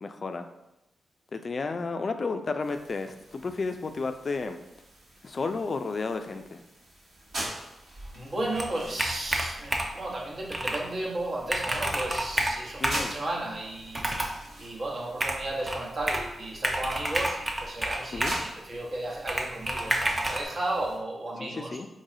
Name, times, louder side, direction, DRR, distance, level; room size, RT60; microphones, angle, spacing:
voice 1, 0.0-0.5 1.3-4.6 5.2-6.6 12.8-13.1 18.1-18.4 21.4-21.9, left 4 dB, 50° left, 7 dB, 0.3 m, -32 dB
sound 1, 2.6-21.0, right 1 dB, 75° right, 1.5 m, -45 dB
voice 2, 8.1-14.1 14.6-21.8, right 1 dB, 50° right, -3 dB, 1.0 m, -34 dB
Computer keyboard, 8.5-10.0 10.5-10.8 11.2-11.3 11.5-13.1 13.9-14.4 15.2-16.3 16.6-18.5 19.3-20.4, right 1 dB, 25° right, 0.6 m, -29 dB
4.0 x 3.1 x 2.6 m, 0.91 s
cardioid pair, 60°, 0 cm